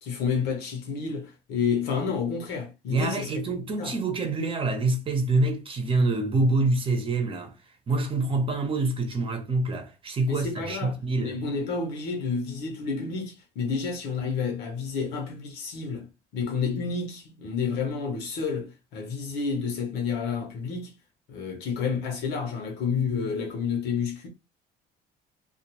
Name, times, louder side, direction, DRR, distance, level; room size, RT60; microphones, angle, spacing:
voice 1, 0.0-4.0 10.3-16.1 16.3-20.9 21.3-24.3, left 5 dB, 90° left, 1.0 m, -30 dB
voice 2, 2.9-7.5 7.9-11.4, right 2 dB, 30° right, 0.8 m, -26 dB
2.4 x 2.4 x 3.0 m
cardioid pair, 110°, 17 cm